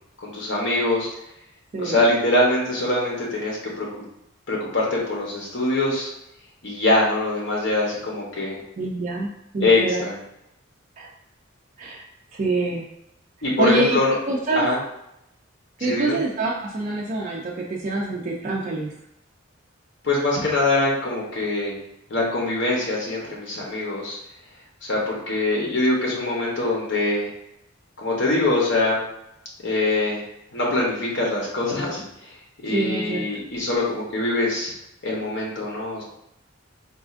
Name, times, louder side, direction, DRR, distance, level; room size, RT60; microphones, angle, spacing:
voice 1, 0.2-1.1 1.8-3.9 4.5-6.1 6.6-8.6 9.6-10.2 13.4-14.1 14.5-14.8 15.8-16.2 20.0-21.7 22.1-24.2 24.8-27.3 28.0-29.0 29.6-30.2 30.5-32.0 32.6-34.7 35.0-36.0, left 2 dB, 60° left, -3 dB, 0.9 m, -23 dB
voice 2, 8.8-10.0 11.0-11.1 11.8-12.0 12.3-12.8 13.6-14.0 14.3-14.7 15.8-18.9 32.7-33.2, right 2 dB, 35° right, -3 dB, 0.4 m, -25 dB
4.1 x 2.4 x 2.4 m, 0.81 s
head